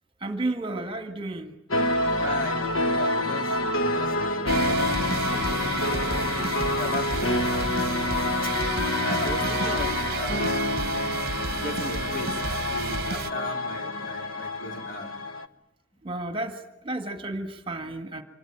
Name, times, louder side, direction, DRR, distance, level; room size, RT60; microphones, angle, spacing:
voice 1, 0.2-1.5 16.0-18.2, right 2 dB, 25° right, 7 dB, 1.9 m, -32 dB
sound 1, 1.7-15.5, left 1 dB, 85° left, 1.4 m, -27 dB
voice 2, 2.1-8.5 9.0-11.1 11.6-12.3 12.6-15.1, left 2 dB, 45° left, 4 dB, 3.1 m, -37 dB
sound 2, 4.5-13.3, right 5 dB, 50° right, 1.0 m, -32 dB
26.5 x 23.0 x 9.0 m, 0.86 s
head